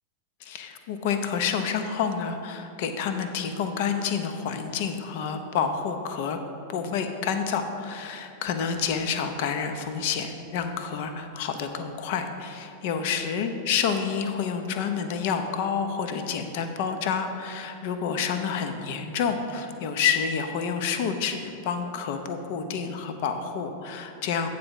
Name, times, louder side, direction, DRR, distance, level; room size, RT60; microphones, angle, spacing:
voice 1, 0.4-6.4 6.7-24.5, left 6 dB, 50° left, 7 dB, 0.6 m, -29 dB
8.6 x 4.1 x 6.4 m, 2.6 s
figure-of-eight pair, 90°, 0 cm